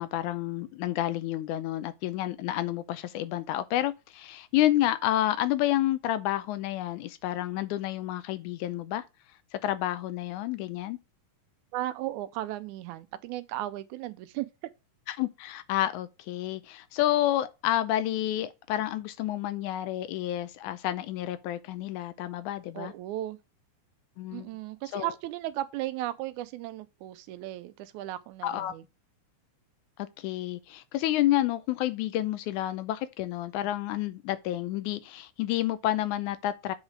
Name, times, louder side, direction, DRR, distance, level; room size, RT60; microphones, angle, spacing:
voice 1, 0.0-9.0 9.5-11.0 15.1-22.9 24.2-24.5 24.9-25.1 28.4-28.7 30.2-36.7, left 13 dB, 80° left, 1.9 m, -29 dB
voice 2, 11.7-14.7 22.7-23.4 24.3-28.8, right 14 dB, 80° right, 1.9 m, -35 dB
7.3 x 4.8 x 5.0 m
omnidirectional pair, 3.6 m